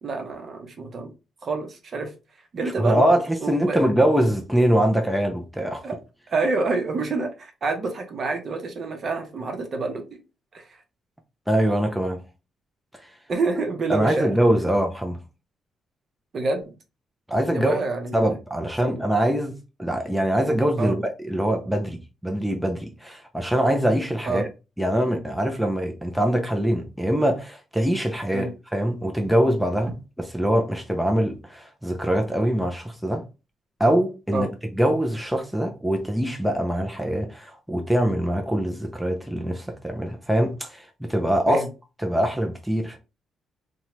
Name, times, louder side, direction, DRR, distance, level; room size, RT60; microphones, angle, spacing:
voice 1, 0.0-1.1 1.4-2.1 2.5-3.1 3.4-3.9 5.8-5.9 6.3-10.0 10.5-10.7 13.3-14.3 16.3-16.7 17.5-18.1 18.8-19.0 20.8-20.9 24.3-24.4 28.3-28.5 34.3-34.5 41.5-41.7, right 3 dB, 50° right, 0.8 m, -27 dB
voice 2, 2.8-5.8 11.5-12.2 13.0-13.1 13.9-15.2 17.3-17.8 18.1-24.5 24.8-33.2 33.8-41.6 42.0-43.0, right 1 dB, 5° right, 0.5 m, -23 dB
2.7 x 2.2 x 3.0 m
cardioid pair, 90°, 0 cm